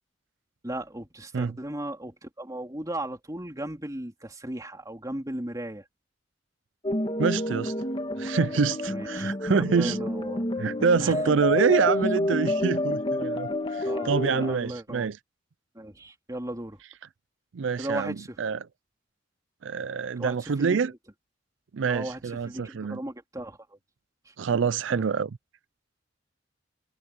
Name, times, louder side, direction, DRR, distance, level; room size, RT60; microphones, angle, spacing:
voice 1, 0.6-5.8 8.9-10.5 11.0-11.4 13.8-15.1 15.7-16.8 17.8-18.4 20.2-21.0 21.9-23.8 24.2-24.3 24.9-25.1, right 1 dB, 20° right, 3.0 m, -36 dB
sound 1, 6.8-14.6, left 1 dB, 30° left, 2.3 m, -29 dB
voice 2, 7.2-7.7 8.2-10.0 10.6-15.2 17.5-18.6 19.6-20.9 21.7-23.0 24.4-25.4, right 5 dB, 80° right, 0.5 m, -26 dB
head